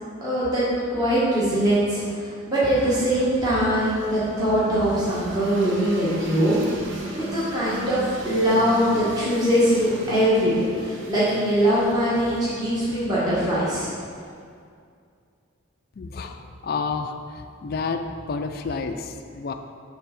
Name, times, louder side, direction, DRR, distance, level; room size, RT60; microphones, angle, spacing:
voice 1, 0.2-0.6 0.9-6.6 7.1-13.9, equal, 20° right, -10 dB, 1.5 m, -22 dB
sound 1, 2.7-14.5, right 2 dB, 70° right, 0.9 m, -38 dB
voice 2, 16.0-19.5, left 4 dB, 50° left, 6 dB, 0.3 m, -30 dB
6.7 x 3.5 x 5.8 m, 2.3 s
head